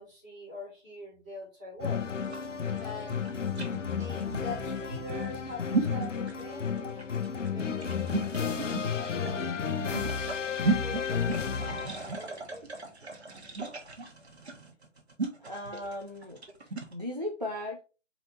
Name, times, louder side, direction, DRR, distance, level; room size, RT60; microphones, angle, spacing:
voice 1, 0.0-2.0 2.7-3.2 3.9-7.1 7.5-9.4 9.8-12.6, left 2 dB, 5° right, 1.1 m, -44 dB
sound 1, 1.8-12.2, left 6 dB, 75° left, 0.8 m, -32 dB
sound 2, 2.2-16.9, right 3 dB, 60° right, 1.2 m, -35 dB
voice 2, 15.4-17.8, left 1 dB, 35° right, 0.4 m, -37 dB
4.3 x 2.6 x 3.8 m
figure-of-eight pair, 170°, 37 cm